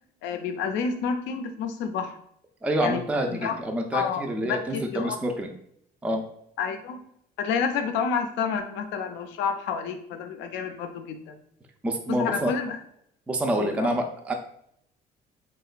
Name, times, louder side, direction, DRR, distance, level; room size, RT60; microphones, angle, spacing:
voice 1, 0.2-2.2 2.8-3.0 3.3-3.6 3.9-5.2 6.6-7.0 7.4-11.3 12.1-12.8 13.6-13.9, left 6 dB, 85° left, 7 dB, 0.4 m, -29 dB
voice 2, 2.6-5.5 6.0-6.2 11.8-12.5 13.3-14.3, right 1 dB, 5° right, 3 dB, 0.3 m, -27 dB
2.9 x 2.2 x 2.4 m, 0.71 s
cardioid pair, 95°, 18 cm